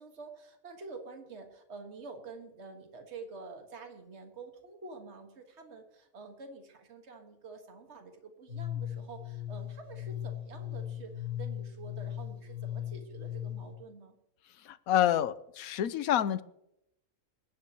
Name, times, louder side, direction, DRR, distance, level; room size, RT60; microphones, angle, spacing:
voice 1, 0.0-14.1, right 4 dB, 50° right, 4 dB, 1.9 m, -48 dB
sound 1, 8.5-13.8, left 11 dB, 45° left, 2.1 m, -38 dB
voice 2, 14.6-16.4, left 11 dB, 75° left, 15 dB, 1.1 m, -28 dB
21.5 x 11.5 x 3.0 m, 0.80 s
omnidirectional pair, 1.5 m